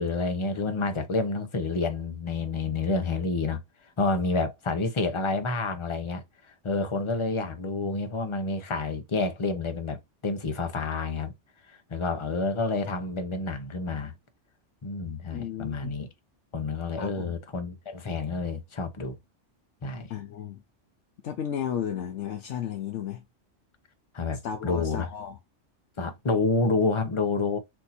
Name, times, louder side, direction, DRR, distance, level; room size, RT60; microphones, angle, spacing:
voice 1, 0.0-3.6 4.0-6.2 6.6-11.3 11.7-14.1 14.8-16.1 16.5-19.2 19.8-20.1 24.1-25.1 26.0-27.6, left 3 dB, 30° left, 0.7 m, -29 dB
voice 2, 15.3-15.9 17.0-17.3 20.1-20.6 21.2-23.2 24.4-25.4, left 9 dB, 75° left, 0.9 m, -34 dB
4.4 x 2.7 x 4.1 m
omnidirectional pair, 1.3 m